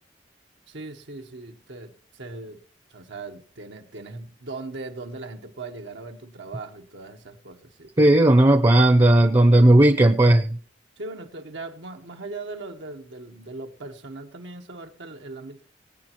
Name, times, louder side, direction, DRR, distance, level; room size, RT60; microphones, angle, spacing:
voice 1, 0.7-2.6 2.9-7.9 11.0-15.6, right 3 dB, 80° right, 5 dB, 1.2 m, -39 dB
voice 2, 8.0-10.6, right 1 dB, 25° right, 8 dB, 0.7 m, -15 dB
22.5 x 9.1 x 3.0 m, 0.41 s
head